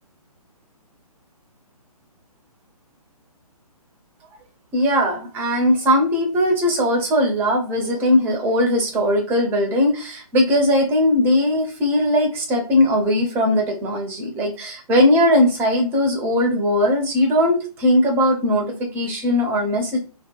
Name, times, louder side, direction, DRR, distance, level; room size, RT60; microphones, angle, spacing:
voice 1, 4.7-20.0, left 1 dB, 10° right, 1 dB, 0.5 m, -19 dB
2.7 x 2.2 x 2.2 m, 0.35 s
figure-of-eight pair, 135°, 19 cm